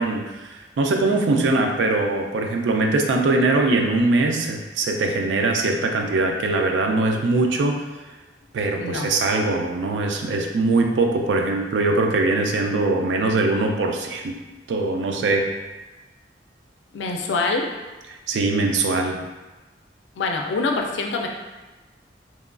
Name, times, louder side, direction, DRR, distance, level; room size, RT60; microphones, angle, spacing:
voice 1, 0.0-7.8 8.5-14.4 14.7-15.5 18.3-19.2, right 2 dB, 80° right, 3 dB, 0.3 m, -22 dB
voice 2, 16.9-17.7 20.2-21.3, left 3 dB, 85° left, 2 dB, 0.4 m, -24 dB
2.9 x 2.2 x 2.4 m, 1.2 s
head